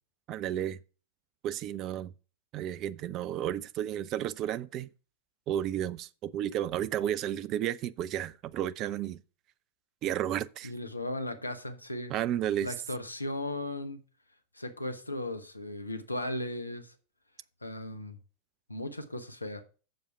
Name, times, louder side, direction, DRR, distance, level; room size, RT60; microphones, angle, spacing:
voice 1, 0.3-0.8 1.4-2.1 2.5-4.9 5.5-9.2 10.0-10.7 12.1-12.7, right 11 dB, 35° right, 0.5 m, -32 dB
voice 2, 10.6-12.2 12.6-14.0 14.5-16.9 17.6-18.2 18.7-19.6, left 1 dB, 85° left, 1.1 m, -36 dB
7.6 x 7.0 x 5.6 m
figure-of-eight pair, 90°, 0 cm